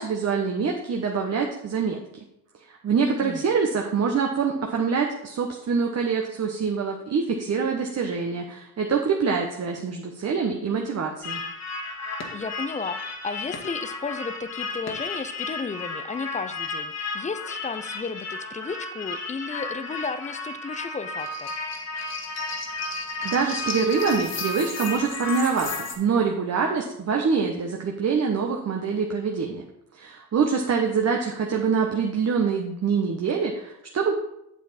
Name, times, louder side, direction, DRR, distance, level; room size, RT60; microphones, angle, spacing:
voice 1, 0.0-2.0 2.7-11.4 23.2-29.6 29.9-34.2, right 5 dB, 35° right, 2 dB, 1.1 m, -25 dB
voice 2, 3.0-3.4 12.3-21.5, left 4 dB, 15° left, 12 dB, 0.6 m, -33 dB
sound 1, 11.2-26.0, left 3 dB, 35° left, 1.8 m, -33 dB
8.3 x 7.1 x 4.3 m, 0.83 s
hypercardioid pair, 70°, 47 cm